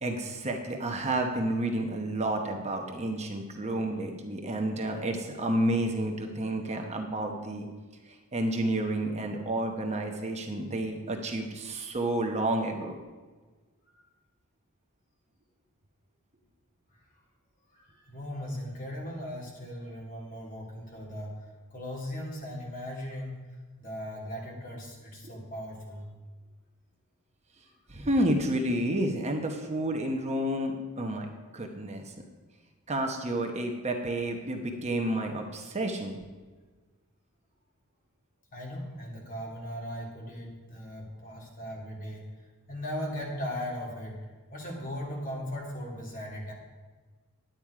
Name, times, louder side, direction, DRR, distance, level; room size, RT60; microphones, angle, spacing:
voice 1, 0.0-7.7 8.1-13.0 25.2-25.3 27.9-31.3 31.5-32.1 32.9-36.2, right 1 dB, 30° right, 3 dB, 1.0 m, -30 dB
voice 2, 17.7-21.3 21.7-23.4 23.8-26.1 38.5-42.3 42.7-44.2 44.5-46.5, equal, 40° left, -2 dB, 2.6 m, -38 dB
10.5 x 9.1 x 4.8 m, 1.4 s
head